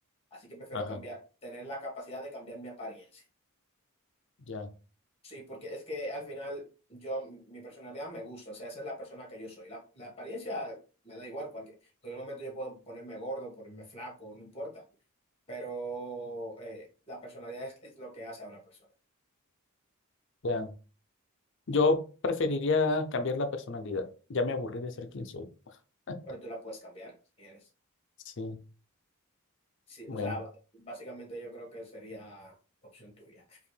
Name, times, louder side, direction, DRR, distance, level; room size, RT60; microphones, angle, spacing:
voice 1, 0.3-3.2 5.2-11.7 12.0-14.8 15.5-18.8 26.3-27.7 29.9-32.5 32.8-33.6, right 1 dB, 30° left, 0 dB, 1.6 m, -41 dB
voice 2, 20.4-20.7 21.7-25.5 26.1-26.2 28.3-28.6 30.1-30.3, left 3 dB, 60° left, 8 dB, 0.6 m, -30 dB
4.9 x 2.6 x 3.3 m, 0.36 s
head